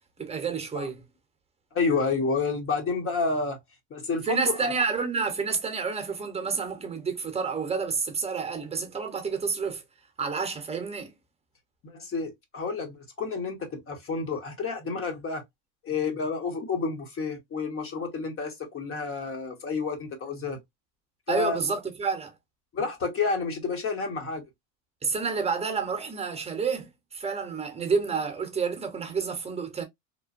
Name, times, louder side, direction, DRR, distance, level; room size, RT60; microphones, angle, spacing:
voice 1, 0.2-1.0 4.2-9.8 10.2-11.1 21.3-22.3 25.0-29.8, right 5 dB, 15° right, 0.9 m, -29 dB
voice 2, 1.7-3.6 3.9-4.7 11.8-15.4 15.8-20.6 21.3-21.6 22.7-24.4, left 4 dB, 30° left, 1.0 m, -30 dB
3.0 x 2.1 x 2.5 m
supercardioid pair, 105°, 41 cm